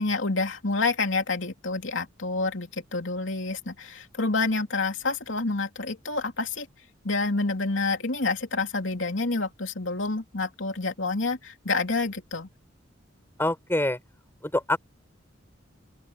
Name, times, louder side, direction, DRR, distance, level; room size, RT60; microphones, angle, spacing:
voice 1, 0.0-6.7 7.0-12.5, left 3 dB, 70° left, 3.1 m, -28 dB
voice 2, 13.4-14.0 14.5-14.8, left 1 dB, 10° left, 5.3 m, -25 dB
open air
head